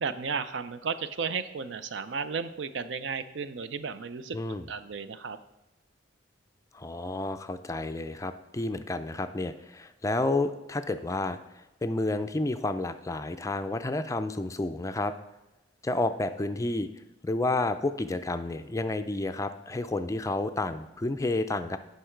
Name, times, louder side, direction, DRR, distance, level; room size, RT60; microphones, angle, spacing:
voice 1, 0.0-4.4 4.7-5.4, right 5 dB, 70° right, 12 dB, 0.5 m, -34 dB
voice 2, 4.3-4.7 6.7-11.4 11.8-15.1 15.8-16.9 17.2-21.8, left 2 dB, 15° left, 10 dB, 0.4 m, -30 dB
10.0 x 5.5 x 4.5 m, 1.0 s
head